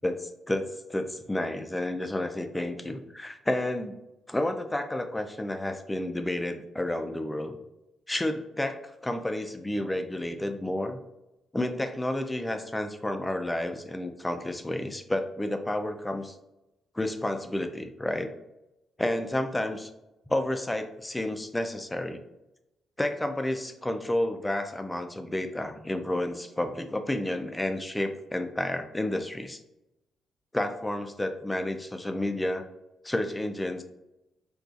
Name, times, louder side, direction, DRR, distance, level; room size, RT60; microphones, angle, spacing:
voice 1, 0.0-4.0 4.3-7.6 8.1-11.0 11.5-16.4 16.9-18.3 19.0-19.9 20.3-22.2 23.0-29.6 30.5-32.6 33.0-33.8, left 1 dB, 15° left, 7 dB, 0.3 m, -30 dB
3.8 x 2.3 x 2.4 m, 0.94 s
cardioid pair, 85°, 0 cm